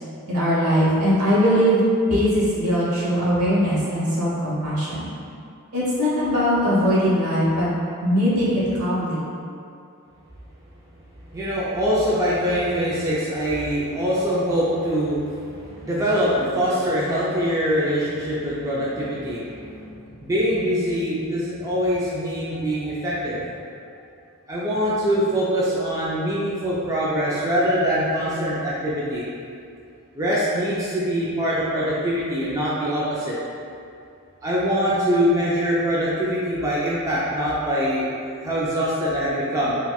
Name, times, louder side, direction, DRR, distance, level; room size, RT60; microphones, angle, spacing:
voice 1, 0.3-1.8 2.1-5.1 5.7-7.7 8.0-9.3, equal, 70° right, -8 dB, 1.0 m, -20 dB
voice 2, 11.3-23.4 24.5-29.2 30.2-33.4 34.4-38.1 38.4-39.7, equal, 15° right, -8 dB, 0.3 m, -23 dB
4.1 x 2.1 x 2.3 m, 2.5 s
head